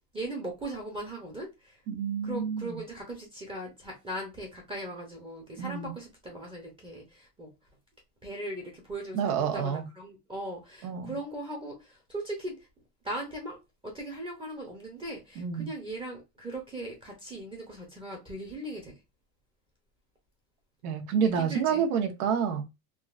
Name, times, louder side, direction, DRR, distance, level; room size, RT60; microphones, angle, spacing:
voice 1, 0.1-1.8 2.2-7.5 8.2-12.6 13.0-13.6 13.8-18.9 21.2-21.8, right 1 dB, 15° right, 0.6 m, -39 dB
voice 2, 1.9-2.8 5.6-5.9 9.1-9.9 10.8-11.2 15.4-15.7 20.8-22.6, right 7 dB, 90° right, 1.1 m, -28 dB
3.7 x 2.5 x 2.4 m
cardioid pair, 160°, 43 cm